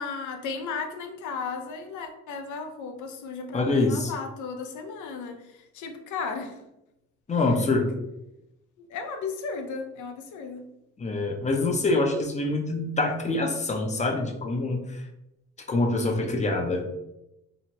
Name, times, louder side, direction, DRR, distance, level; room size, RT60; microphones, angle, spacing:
voice 1, 0.0-6.6 7.3-7.6 8.8-10.7, left 5 dB, 75° left, 5 dB, 0.6 m, -35 dB
voice 2, 3.5-4.1 7.3-7.8 11.0-15.0 15.7-16.8, left 2 dB, 25° left, 3 dB, 0.5 m, -25 dB
2.8 x 2.1 x 2.8 m, 0.88 s
cardioid pair, 90°, 30 cm